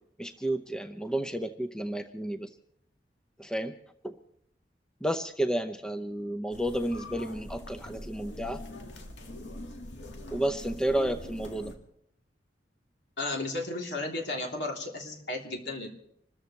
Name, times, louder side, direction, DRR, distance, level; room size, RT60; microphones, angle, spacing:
voice 1, 0.2-2.5 3.4-3.7 4.0-4.1 5.0-8.6 10.3-11.7, right 1 dB, 5° left, 7 dB, 0.6 m, -31 dB
sound 1, 6.5-11.7, left 1 dB, 90° left, 2.0 m, -43 dB
voice 2, 13.2-15.9, left 2 dB, 70° left, 0 dB, 3.2 m, -34 dB
27.0 x 14.0 x 3.2 m, 0.71 s
head